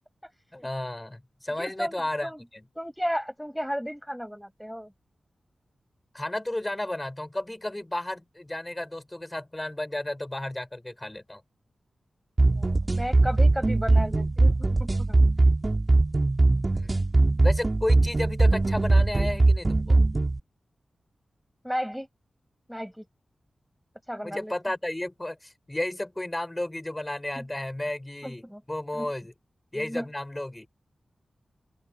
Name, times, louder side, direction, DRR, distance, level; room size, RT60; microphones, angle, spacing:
voice 1, 0.5-2.6 6.1-11.4 16.7-17.1 17.4-20.0 24.2-29.3 29.7-30.7, left 1 dB, 15° left, 5.8 m, -33 dB
voice 2, 1.6-2.4 2.7-4.9 12.5-15.2 21.6-22.1 22.7-23.0 24.1-24.5 27.4-27.5 28.2-28.6 28.9-29.1 29.7-30.1, equal, ahead, 6.7 m, -34 dB
sound 1, 12.4-20.4, right 2 dB, 35° right, 3.2 m, -21 dB
open air
wide cardioid pair, 70°, 0 cm